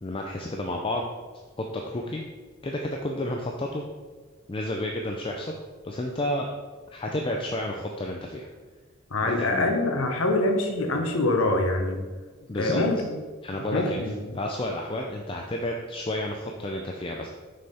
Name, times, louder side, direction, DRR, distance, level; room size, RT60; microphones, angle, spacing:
voice 1, 0.0-1.1 1.6-2.3 2.6-3.9 4.5-5.5 5.8-6.5 6.9-8.5 9.4-9.7 12.5-12.8 13.4-14.0 14.3-17.3, left 1 dB, 25° left, 1 dB, 0.5 m, -31 dB
voice 2, 9.1-12.0 12.6-13.1 13.5-14.4, left 2 dB, 75° left, 3 dB, 1.0 m, -25 dB
6.6 x 5.5 x 4.3 m, 1.4 s
head